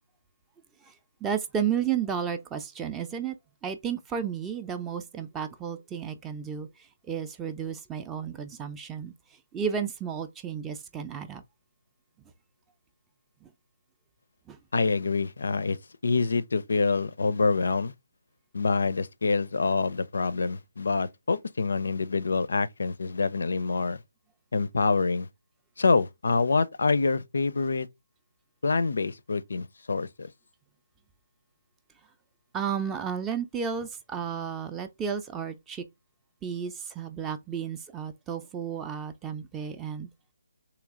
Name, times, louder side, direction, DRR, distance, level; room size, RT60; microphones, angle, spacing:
voice 1, 1.2-3.4 3.6-6.7 7.1-9.1 9.5-11.4 13.4-13.5 14.5-14.6 32.5-35.8 36.4-40.1, right 7 dB, 10° right, 0.4 m, -32 dB
voice 2, 14.7-15.8 16.0-17.9 18.5-24.0 24.5-25.3 25.8-27.9 28.6-30.3, left 4 dB, 70° left, 0.4 m, -26 dB
3.2 x 2.9 x 3.6 m
figure-of-eight pair, 150°, 0 cm